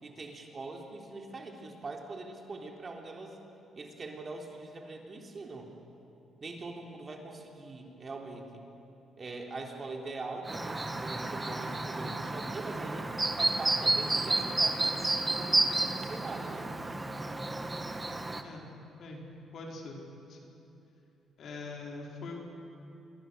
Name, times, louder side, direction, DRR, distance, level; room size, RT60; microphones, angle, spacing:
voice 1, 0.0-3.4 3.8-5.7 6.4-8.7 9.2-13.1 13.4-16.7, right 3 dB, 35° right, 1 dB, 3.5 m, -42 dB
Chirp tweet, 10.5-18.4, right 2 dB, 20° right, 1.5 m, -31 dB
voice 2, 19.5-20.0 20.3-20.4 21.4-22.3, left 3 dB, 65° left, 0 dB, 4.6 m, -42 dB
26.0 x 21.5 x 6.9 m, 2.9 s
cardioid pair, 90°, 0 cm